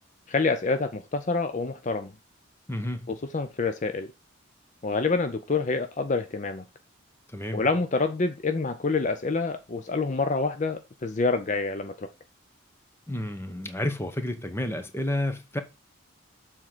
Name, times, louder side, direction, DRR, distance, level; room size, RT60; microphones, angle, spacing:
voice 1, 0.3-2.1 3.1-4.1 4.8-6.6 7.5-12.1, left 3 dB, 35° left, 0.5 m, -27 dB
voice 2, 2.7-3.1 7.3-7.6 13.1-15.6, left 1 dB, 10° left, 0.9 m, -30 dB
7.3 x 3.8 x 6.0 m
head